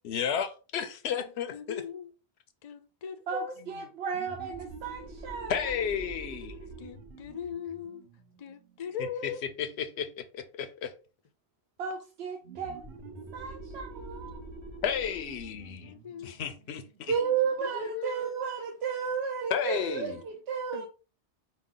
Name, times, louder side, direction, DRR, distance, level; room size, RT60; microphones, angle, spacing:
voice 1, 0.0-1.8 5.5-6.6 9.0-9.3 9.6-10.9 14.8-15.9 16.2-17.1 19.5-20.2, left 8 dB, 85° left, 0.9 m, -33 dB
voice 2, 1.1-2.1 2.6-3.5 6.8-8.0 8.4-9.4 15.8-16.4 17.2-18.1 20.7-20.9, left 7 dB, 50° left, 0.4 m, -40 dB
voice 3, 3.3-5.6 11.8-12.8 13.3-14.4 17.1-20.9, right 6 dB, 80° right, 0.9 m, -33 dB
sound 1, 4.1-9.4 12.4-17.7, right 3 dB, 60° right, 1.2 m, -46 dB
5.0 x 2.2 x 3.7 m
omnidirectional pair, 1.1 m